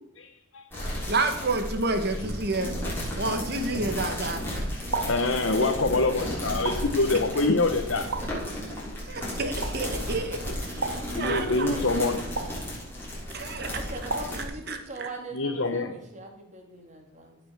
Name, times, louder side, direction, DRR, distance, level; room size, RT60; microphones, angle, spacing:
voice 1, 0.2-0.6 5.1-8.1 11.1-12.2 15.3-15.9, left 3 dB, 70° left, 5 dB, 1.1 m, -25 dB
sound 1, 0.7-14.4, equal, 10° left, 6.3 m, -34 dB
voice 2, 1.1-2.7 3.2-4.4 9.1-11.7 13.3-13.8 14.7-15.1, right 2 dB, 55° right, 6 dB, 1.9 m, -30 dB
sound 2, 4.9-5.3 6.6-7.0 8.1-8.5 9.6-9.9 10.8-11.2 12.4-12.7 14.1-14.5, right 3 dB, 75° right, 1.8 m, -33 dB
voice 3, 10.8-12.4 13.7-17.4, right 2 dB, 35° right, 3 dB, 2.8 m, -40 dB
18.0 x 6.9 x 6.9 m, 0.85 s
head